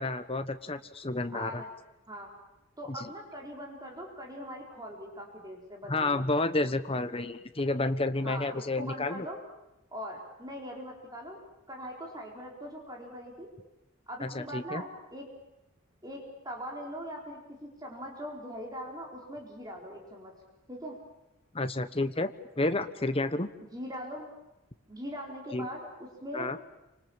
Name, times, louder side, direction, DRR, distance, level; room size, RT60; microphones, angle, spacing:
voice 1, 0.0-1.6 2.9-3.1 5.9-9.3 14.2-14.8 21.5-23.5 25.5-25.7 26.3-26.6, left 2 dB, 25° left, 9 dB, 1.2 m, -30 dB
voice 2, 1.3-1.7 2.1-2.3 2.8-6.2 8.2-9.4 9.9-11.4 11.7-13.5 14.1-15.3 16.0-20.3 20.7-21.0 23.7-24.3 24.9-26.5, equal, 20° right, 0 dB, 4.4 m, -41 dB
28.5 x 26.0 x 7.3 m, 0.95 s
head